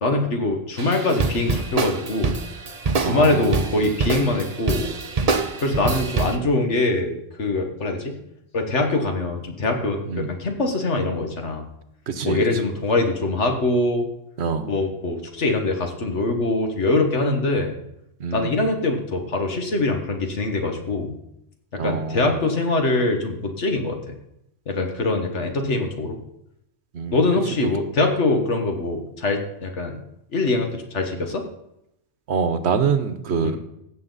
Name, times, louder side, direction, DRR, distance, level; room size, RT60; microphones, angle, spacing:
voice 1, 0.0-2.3 3.0-4.9 5.6-8.1 8.5-11.7 12.2-14.1 14.7-17.7 18.3-21.2 21.7-24.0 24.7-26.2 27.1-30.0 30.3-31.4 33.4-33.5, left 2 dB, 75° left, 4 dB, 1.8 m, -23 dB
sound 1, 0.8-6.4, right 4 dB, 35° right, 0.8 m, -25 dB
voice 2, 2.9-3.9 10.1-10.3 12.1-12.4 14.4-14.7 18.2-18.6 21.8-22.5 26.9-27.2 27.6-27.7 32.3-33.6, right 5 dB, 65° right, 10 dB, 1.1 m, -25 dB
16.0 x 6.9 x 4.0 m, 0.82 s
omnidirectional pair, 1.2 m